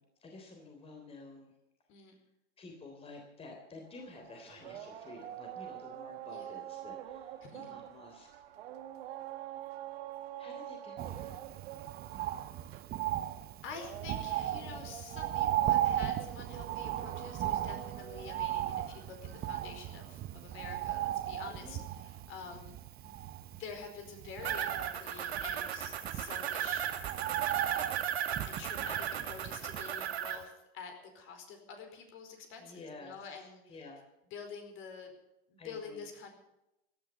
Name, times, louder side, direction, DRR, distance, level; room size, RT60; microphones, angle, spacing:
voice 1, 0.0-1.5 2.6-8.3 10.4-11.4 12.1-12.4 21.5-21.8 32.6-34.0 35.6-36.1, left 3 dB, 20° left, 2 dB, 3.5 m, -51 dB
sound 1, 3.9-20.2, right 11 dB, 70° right, 2.0 m, -47 dB
voice 2, 7.4-7.7 12.7-12.8 13.6-22.8 23.0-27.9 28.5-33.8 34.3-35.1 35.5-36.3, left 5 dB, 40° left, 4 dB, 4.5 m, -48 dB
Bird, 11.0-30.1 30.4-30.5, right 12 dB, 30° right, 0.9 m, -37 dB
sound 2, 24.4-30.3, right 9 dB, 85° right, 2.3 m, -36 dB
16.5 x 10.5 x 7.1 m, 0.88 s
hypercardioid pair, 120°, 31 cm